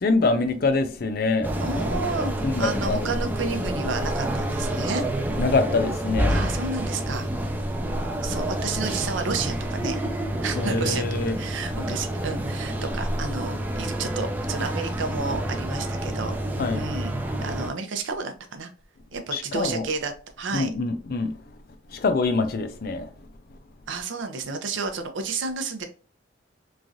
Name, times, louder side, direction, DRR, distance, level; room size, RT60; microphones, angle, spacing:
voice 1, 0.0-1.5 2.4-3.2 5.4-6.4 10.5-11.4 16.6-16.8 19.3-19.9 20.5-21.4 21.9-23.1, left 3 dB, 50° left, 0.4 m, -25 dB
sound 1, 1.4-17.7, right 1 dB, 10° right, 0.3 m, -28 dB
voice 2, 1.6-5.0 6.3-7.3 8.2-10.0 10.4-16.3 16.7-17.1 17.4-18.7 19.1-20.1 20.4-20.7 23.9-25.9, right 4 dB, 80° right, 0.5 m, -31 dB
3.1 x 2.4 x 2.5 m
head